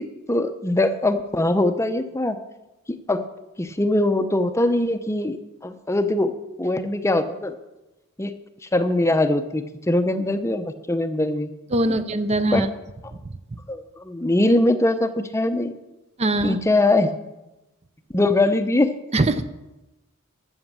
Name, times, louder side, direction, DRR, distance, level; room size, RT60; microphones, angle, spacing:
voice 1, 0.0-2.4 3.1-3.2 3.6-5.4 5.6-6.3 6.6-7.5 8.2-8.3 8.7-11.5 11.9-12.0 12.5-12.6 13.7-15.7 16.4-17.1 18.1-18.9, left 2 dB, 15° left, 9 dB, 0.6 m, -22 dB
voice 2, 11.7-12.7 16.2-16.6 19.1-19.4, right 2 dB, 30° right, 12 dB, 0.6 m, -21 dB
13.0 x 7.2 x 7.3 m, 1.0 s
head